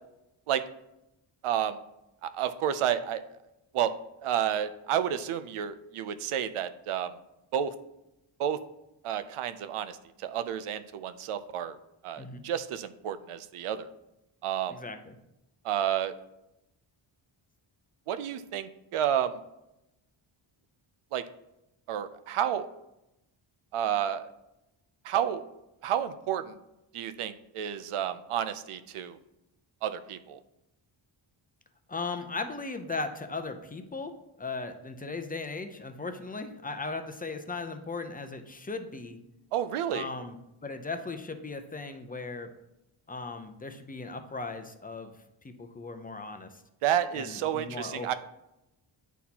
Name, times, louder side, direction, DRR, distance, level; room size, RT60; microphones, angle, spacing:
voice 1, 1.4-1.8 2.2-3.2 3.7-3.9 4.2-7.1 7.5-7.7 8.4-8.6 9.0-11.8 12.0-13.9 14.4-14.8 15.6-16.1 18.1-19.4 21.1-21.2 21.9-22.7 23.7-24.3 25.0-25.5 25.8-26.6 26.9-29.2 29.8-30.4 39.5-40.1 46.8-48.1, right 10 dB, 90° right, 12 dB, 0.6 m, -30 dB
voice 2, 14.7-15.1 31.9-34.1 34.4-39.2 39.9-40.3 40.6-42.5 43.1-45.1 45.4-46.6 47.1-48.1, left 3 dB, 20° left, 7 dB, 0.5 m, -37 dB
9.2 x 4.2 x 2.8 m, 0.89 s
wide cardioid pair, 125°, 49 cm